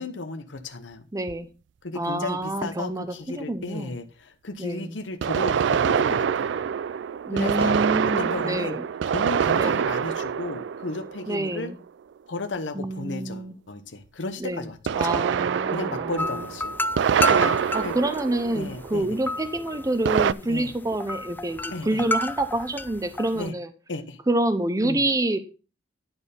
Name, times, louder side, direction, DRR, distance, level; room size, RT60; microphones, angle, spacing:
voice 1, 0.0-1.1 1.8-6.6 7.3-7.7 8.0-8.8 9.1-11.7 12.3-15.2 15.7-16.7 17.8-17.9 18.5-19.2 20.5-20.7 21.7-22.0 23.3-23.5 23.9-24.2 24.8-25.0, left 2 dB, 85° left, 8 dB, 0.9 m, -34 dB
voice 2, 1.1-1.5 1.9-4.0 4.6-5.0 7.3-8.8 9.6-9.8 11.3-11.8 12.7-13.5 14.4-14.7 15.0-16.4 17.3-23.7 24.3-25.4, right 1 dB, 20° right, 10 dB, 0.7 m, -27 dB
sound 1, 1.3-1.4 5.2-11.7 14.9-19.1 20.0-20.3, right 7 dB, 75° right, 0.3 m, -25 dB
sound 2, 16.2-23.5, left 2 dB, 10° left, 0.3 m, -31 dB
10.5 x 4.4 x 5.2 m, 0.33 s
head